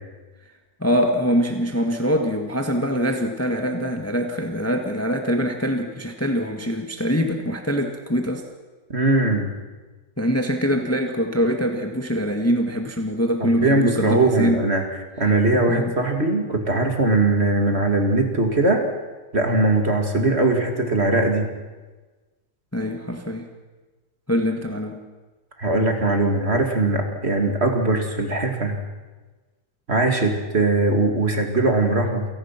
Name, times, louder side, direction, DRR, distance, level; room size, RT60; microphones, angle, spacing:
voice 1, 0.8-8.4 10.2-14.6 15.7-15.9 22.7-23.5 24.3-25.0, equal, 10° left, 4 dB, 1.7 m, -23 dB
voice 2, 8.9-9.5 13.4-14.8 15.2-18.9 19.3-21.5 25.6-28.8 29.9-32.3, right 2 dB, 35° right, 4 dB, 2.6 m, -20 dB
29.0 x 18.0 x 6.0 m, 1.2 s
omnidirectional pair, 1.9 m